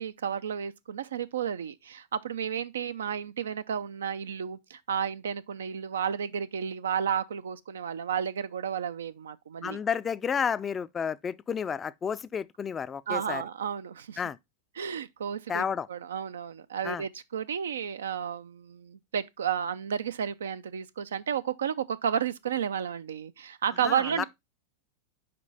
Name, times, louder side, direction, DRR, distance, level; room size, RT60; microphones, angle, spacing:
voice 1, 0.0-9.8 13.1-14.2 14.8-24.2, right 8 dB, 80° right, 0.4 m, -32 dB
voice 2, 9.6-13.4 14.2-14.4 15.5-15.9 16.8-17.0 23.8-24.2, left 7 dB, 25° left, 0.4 m, -31 dB
5.1 x 4.7 x 4.0 m
hypercardioid pair, 100°, 0 cm